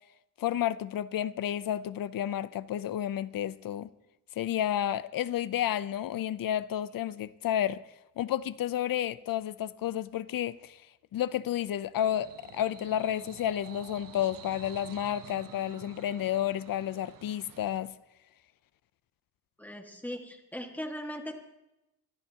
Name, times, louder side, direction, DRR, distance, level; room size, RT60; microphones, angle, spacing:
voice 1, 0.4-3.9 4.4-7.8 8.2-10.8 11.1-17.9, left 11 dB, 70° left, 0.6 m, -31 dB
sound 1, 12.0-17.8, right 9 dB, 65° right, 0.8 m, -50 dB
voice 2, 19.6-21.3, equal, 5° left, 1.8 m, -39 dB
24.5 x 14.5 x 2.9 m
wide cardioid pair, 125°, 35 cm